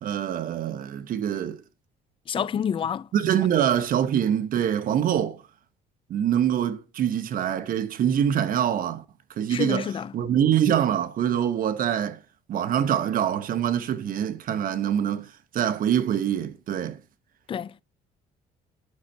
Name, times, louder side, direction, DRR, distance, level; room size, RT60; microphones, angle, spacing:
voice 1, 0.0-1.6 3.1-5.4 6.1-9.0 9.4-12.2 12.5-15.3 15.5-17.0, right 9 dB, 55° right, 1.0 m, -24 dB
voice 2, 2.3-3.1 9.5-10.1 17.5-17.8, left 8 dB, 30° left, 0.4 m, -28 dB
9.6 x 6.6 x 4.4 m
cardioid pair, 110°, 17 cm